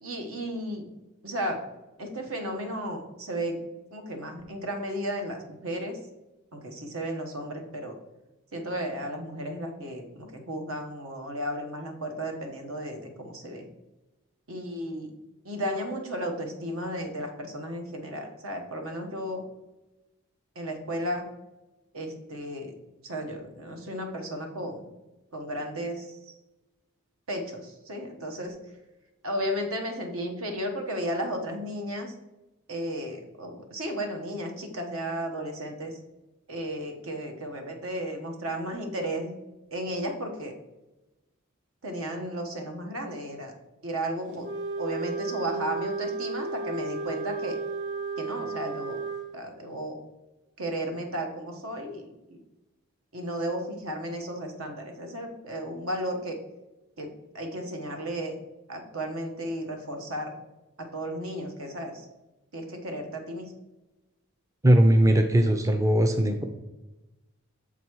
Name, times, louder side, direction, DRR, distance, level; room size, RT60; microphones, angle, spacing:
voice 1, 0.0-0.8 1.2-1.6 2.0-3.6 3.9-6.0 6.5-7.9 8.5-13.6 14.5-15.1 15.4-19.4 20.5-21.3 21.9-22.7 23.0-24.9 25.3-26.3 27.3-28.6 29.2-32.1 32.7-36.0 36.5-39.3 39.7-40.5 41.8-43.5 43.8-44.5 44.8-47.6 48.2-49.0 49.3-50.0 50.6-52.4 53.1-56.4 57.0-58.4 58.7-60.4 60.8-62.1 62.5-63.5, equal, 75° right, 3 dB, 1.2 m, -34 dB
Wind instrument woodwind instrument, 44.4-49.3, right 4 dB, 55° right, 0.9 m, -33 dB
voice 2, 64.6-66.4, right 1 dB, 15° right, 5 dB, 0.4 m, -20 dB
7.1 x 4.1 x 4.6 m, 1.0 s
head